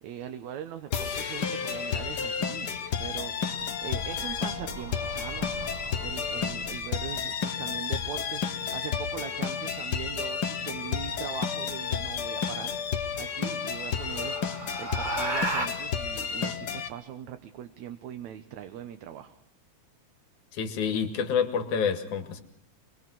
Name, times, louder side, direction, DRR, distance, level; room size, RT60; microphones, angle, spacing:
voice 1, 0.0-2.7 3.0-5.5 6.0-14.4 14.8-19.4, right 10 dB, 75° right, 8 dB, 2.4 m, -41 dB
sound 1, 0.9-16.9, left 6 dB, 45° left, 1.5 m, -31 dB
sound 2, 3.5-7.0 9.3-9.8 11.8-11.9 12.4-12.5 13.0-15.7, right 2 dB, 20° right, 1.4 m, -37 dB
voice 2, 20.5-22.4, left 6 dB, 90° left, 8 dB, 3.3 m, -28 dB
25.0 x 22.0 x 6.3 m, 0.66 s
omnidirectional pair, 3.3 m